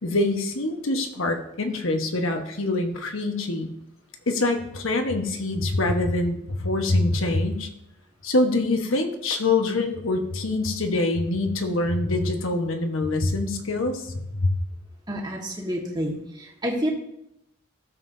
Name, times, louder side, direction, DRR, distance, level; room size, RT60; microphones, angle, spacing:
voice 1, 0.0-3.7 4.3-7.7 8.2-14.5, left 2 dB, 75° left, 5 dB, 1.2 m, -25 dB
voice 2, 15.1-16.9, equal, 20° right, -1 dB, 1.5 m, -29 dB
15.0 x 7.3 x 2.7 m, 0.82 s
head